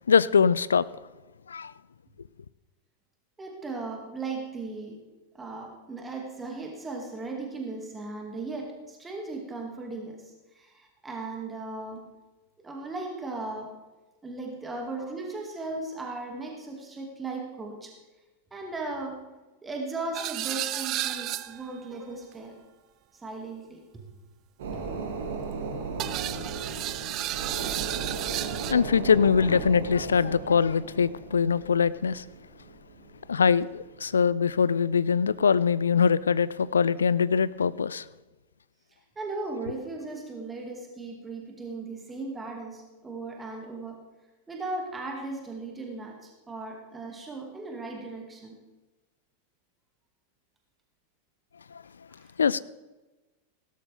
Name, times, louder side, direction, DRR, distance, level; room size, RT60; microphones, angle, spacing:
voice 1, 0.1-0.9 1.5-1.7 28.7-32.2 33.3-38.0 51.7-51.8 52.4-52.6, left 6 dB, 70° left, 0.3 m, -23 dB
voice 2, 3.4-5.0 5.3-12.1 12.6-13.7 14.2-17.9 18.5-19.2 19.6-22.6 23.2-24.0 24.7-24.8 39.2-44.0 44.5-48.6 52.2-52.3, right 3 dB, 15° right, 2.1 m, -37 dB
sound 1, 20.1-21.8 26.0-28.7, right 14 dB, 35° right, 0.5 m, -32 dB
sound 2, 24.6-34.6 35.0-35.1, right 4 dB, 55° right, 2.5 m, -36 dB
17.0 x 13.0 x 3.5 m
figure-of-eight pair, 90°, 0 cm